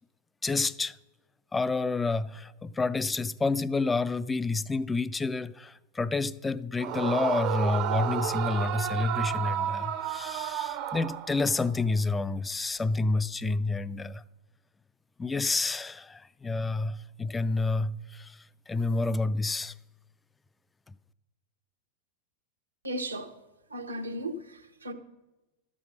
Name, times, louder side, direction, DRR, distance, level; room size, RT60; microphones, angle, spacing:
voice 1, 0.4-0.9 1.5-14.2 15.2-18.4 18.7-19.7, left 3 dB, 10° left, 0.3 m, -29 dB
Yell / Screaming, 6.8-11.7, right 10 dB, 40° right, 0.6 m, -31 dB
voice 2, 22.8-23.3 23.7-24.9, right 1 dB, 80° right, 1.0 m, -35 dB
12.5 x 7.6 x 5.6 m
figure-of-eight pair, 90°, 0 cm